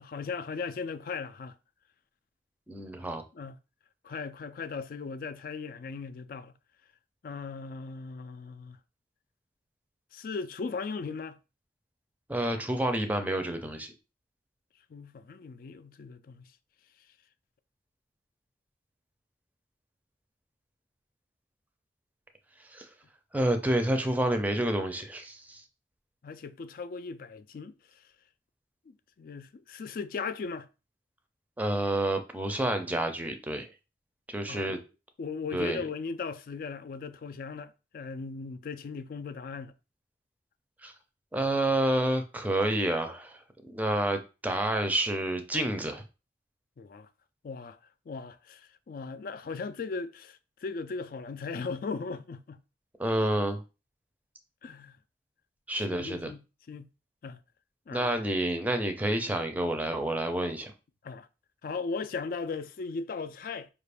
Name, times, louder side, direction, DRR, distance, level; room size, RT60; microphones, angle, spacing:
voice 1, 0.0-1.5 3.3-3.6 4.0-6.5 7.2-8.8 10.1-11.4 14.9-16.5 26.2-28.0 28.9-30.7 34.5-34.8 35.2-39.7 46.8-47.1 47.4-47.8 48.1-52.6 54.6-55.0 55.9-56.4 56.7-56.9 57.2-57.4 57.9-58.1 61.0-61.3 61.6-63.7, left 4 dB, 50° left, 0.3 m, -38 dB
voice 2, 2.7-3.2 12.3-13.9 22.7-22.9 23.3-25.6 31.6-33.7 34.3-34.8 35.5-35.8 40.8-40.9 41.3-46.0 53.0-53.6 55.7-56.3 57.9-60.7, right 1 dB, 10° right, 0.5 m, -29 dB
4.7 x 2.5 x 3.3 m
head